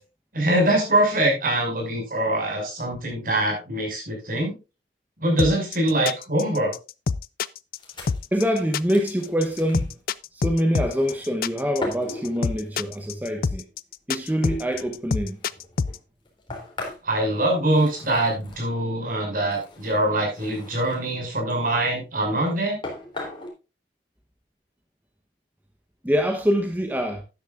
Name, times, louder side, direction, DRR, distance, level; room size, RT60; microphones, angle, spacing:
voice 1, 0.3-4.6 5.2-6.7 17.0-22.8, right 1 dB, 50° right, 5.9 m, -23 dB
sound 1, 5.4-16.0, left 5 dB, 55° left, 0.4 m, -26 dB
sound 2, 7.8-9.9 10.7-11.4 11.8-13.0 13.8-13.9 14.4-18.7 19.4-21.0 21.4-22.0 22.5-22.6 22.8-23.5, left 2 dB, 25° left, 3.2 m, -39 dB
voice 2, 8.3-9.9 10.3-13.6 14.1-15.4 16.5-16.6 26.0-27.2, equal, 10° right, 0.9 m, -25 dB
12.5 x 10.5 x 2.5 m
head